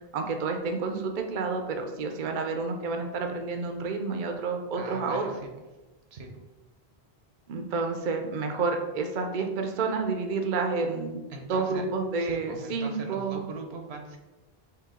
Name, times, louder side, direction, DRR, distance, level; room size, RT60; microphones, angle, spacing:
voice 1, 0.1-5.2 7.5-11.2 11.5-13.4, right 4 dB, 55° right, 5 dB, 0.7 m, -29 dB
voice 2, 4.7-5.5 6.1-6.3 11.3-11.8 12.2-14.2, right 3 dB, 80° right, 3 dB, 1.0 m, -40 dB
4.7 x 3.1 x 3.7 m, 1.1 s
omnidirectional pair, 1.0 m